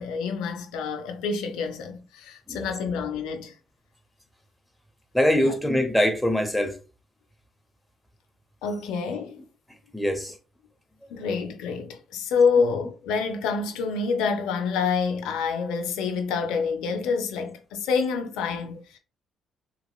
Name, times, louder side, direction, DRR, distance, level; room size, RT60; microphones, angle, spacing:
voice 1, 0.0-3.5 5.4-5.5 8.6-9.4 11.1-19.0, left 5 dB, 75° left, 0.4 m, -27 dB
voice 2, 5.1-6.8 9.9-10.4, equal, 5° left, 0.8 m, -23 dB
2.9 x 2.9 x 2.2 m
hypercardioid pair, 50°, 0 cm